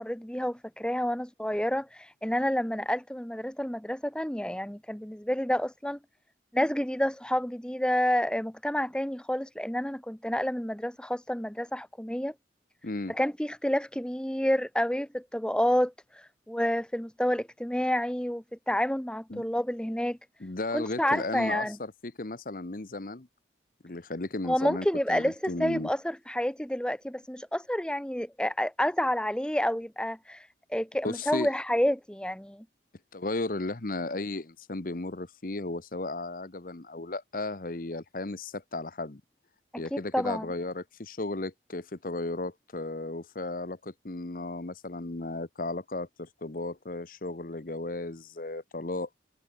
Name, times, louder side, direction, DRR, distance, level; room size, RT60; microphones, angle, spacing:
voice 1, 0.0-6.0 6.5-12.3 13.1-15.9 16.5-20.2 20.7-21.8 24.4-25.3 25.6-30.4 30.7-32.6 39.7-40.5, equal, 5° left, 0.8 m, -29 dB
voice 2, 12.8-13.2 19.3-19.4 20.4-23.3 23.8-25.9 31.0-31.5 33.1-39.2 39.8-49.1, left 2 dB, 50° left, 1.0 m, -35 dB
head